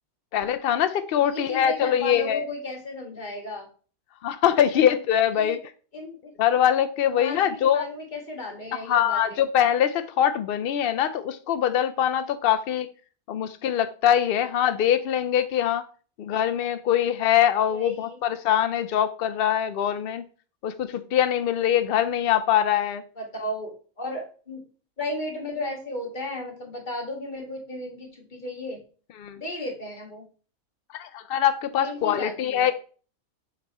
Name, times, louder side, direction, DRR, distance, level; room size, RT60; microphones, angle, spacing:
voice 1, 0.3-2.4 4.2-5.6 6.4-7.8 8.7-12.9 13.3-15.9 16.2-20.3 20.6-23.0 29.2-29.4 30.9-32.7, left 10 dB, 75° left, 10 dB, 0.5 m, -23 dB
voice 2, 1.2-3.7 5.4-5.6 5.9-6.3 7.1-9.5 17.7-18.2 23.2-24.6 25.0-28.8 29.4-30.3 31.8-32.7, left 1 dB, 35° left, 0 dB, 1.7 m, -34 dB
7.1 x 4.2 x 4.1 m, 0.39 s
omnidirectional pair, 1.5 m